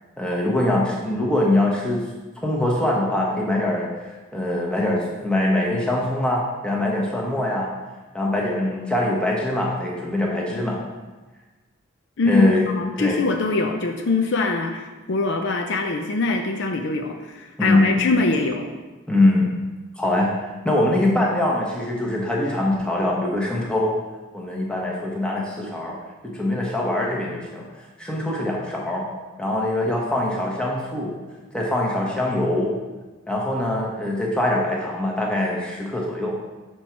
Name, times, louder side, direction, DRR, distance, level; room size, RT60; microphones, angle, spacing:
voice 1, 0.2-2.0 2.4-3.9 4.3-7.7 8.1-10.8 12.2-12.7 13.0-13.2 17.6-18.0 19.1-19.6 20.0-24.0 24.3-26.0 26.2-27.7 28.0-29.0 29.4-31.2 31.5-32.7 33.3-36.4, left 1 dB, 5° left, -3 dB, 0.9 m, -23 dB
voice 2, 12.8-18.7, left 3 dB, 55° left, 4 dB, 0.5 m, -23 dB
6.1 x 4.3 x 4.4 m, 1.2 s
head